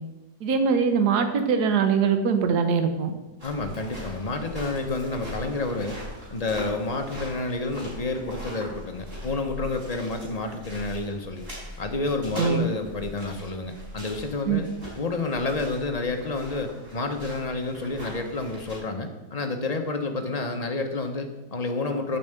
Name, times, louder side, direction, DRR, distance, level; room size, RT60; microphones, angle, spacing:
voice 1, 0.4-3.1 12.4-12.7 14.5-14.6, right 6 dB, 65° right, 7 dB, 1.5 m, -22 dB
voice 2, 3.4-6.0 6.3-11.5 11.8-14.7 15.0-22.2, left 3 dB, 30° left, 5 dB, 0.7 m, -29 dB
sound 1, 3.4-18.8, equal, 30° right, 4.5 m, -41 dB
9.2 x 5.6 x 7.9 m, 1.1 s
omnidirectional pair, 1.9 m